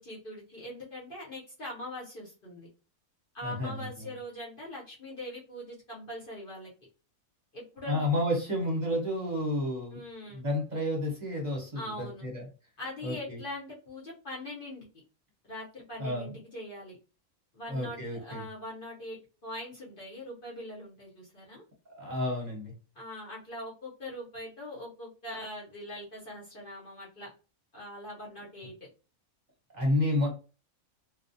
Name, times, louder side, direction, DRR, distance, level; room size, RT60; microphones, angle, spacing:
voice 1, 0.0-2.7 3.3-6.7 7.5-8.1 9.9-10.4 11.7-12.3 12.8-14.8 15.4-17.0 17.5-21.6 22.9-27.3 27.7-28.9, left 1 dB, 45° left, -4 dB, 0.9 m, -42 dB
voice 2, 3.4-3.8 7.9-10.0 10.3-12.5 13.0-13.4 16.0-16.3 17.7-18.4 21.9-22.7 29.7-30.3, left 1 dB, 35° right, -1 dB, 0.8 m, -30 dB
2.4 x 2.2 x 2.6 m, 0.33 s
omnidirectional pair, 1.5 m